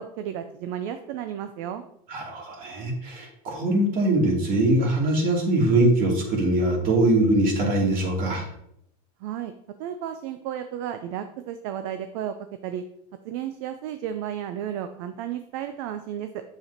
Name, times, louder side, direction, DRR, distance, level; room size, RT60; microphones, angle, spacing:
voice 1, 0.0-1.8 9.2-9.5 9.8-12.3 12.6-12.8 13.2-16.4, right 10 dB, 60° right, 9 dB, 0.6 m, -33 dB
voice 2, 2.1-8.5, right 1 dB, 45° right, -1 dB, 2.7 m, -22 dB
7.9 x 7.0 x 2.8 m, 0.74 s
supercardioid pair, 120°, 20 cm